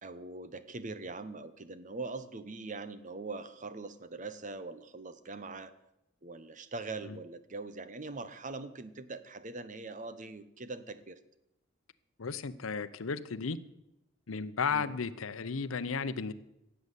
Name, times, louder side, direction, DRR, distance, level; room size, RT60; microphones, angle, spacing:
voice 1, 0.0-5.7 6.2-11.2 14.7-15.0, right 3 dB, 40° right, 13 dB, 0.9 m, -42 dB
voice 2, 12.2-13.6 14.3-16.3, left 5 dB, 90° left, 12 dB, 0.7 m, -34 dB
16.0 x 8.0 x 8.2 m, 0.87 s
head